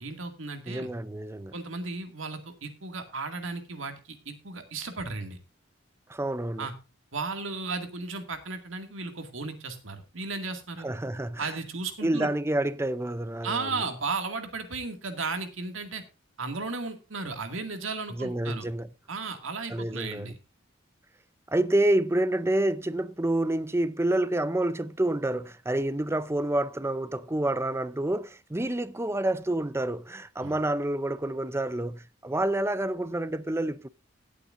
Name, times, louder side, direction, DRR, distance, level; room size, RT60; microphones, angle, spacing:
voice 1, 0.0-0.9 1.5-5.4 6.6-6.7 7.1-10.9 11.4-12.3 13.4-16.0 16.4-18.7 19.1-20.4 30.4-30.5, right 3 dB, 80° right, 2.2 m, -35 dB
voice 2, 0.7-1.5 6.1-6.7 10.8-11.5 12.0-13.7 18.1-18.9 19.7-20.3 21.5-33.9, right 1 dB, 15° right, 0.5 m, -28 dB
17.5 x 8.5 x 2.6 m
head